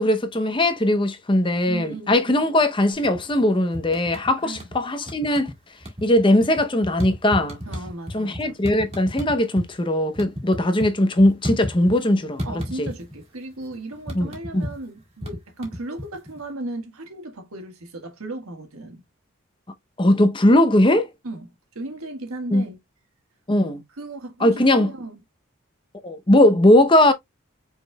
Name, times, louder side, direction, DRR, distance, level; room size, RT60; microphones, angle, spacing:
voice 1, 0.0-5.5 6.0-7.6 8.1-12.5 12.8-12.9 14.1-14.7 20.0-21.1 22.5-22.6 23.5-23.8 24.4-24.9 26.0-27.1, left 1 dB, 25° left, 0.6 m, -19 dB
voice 2, 1.7-2.3 4.4-4.7 7.6-8.6 12.4-19.0 21.2-22.8 24.0-25.2, right 2 dB, 85° right, 1.5 m, -36 dB
sound 1, 2.9-3.4 3.7-4.8 5.0-5.5 5.8-9.7 10.0-12.1 12.4-13.2 13.5-16.4, equal, 30° right, 1.7 m, -33 dB
5.3 x 4.2 x 2.2 m
head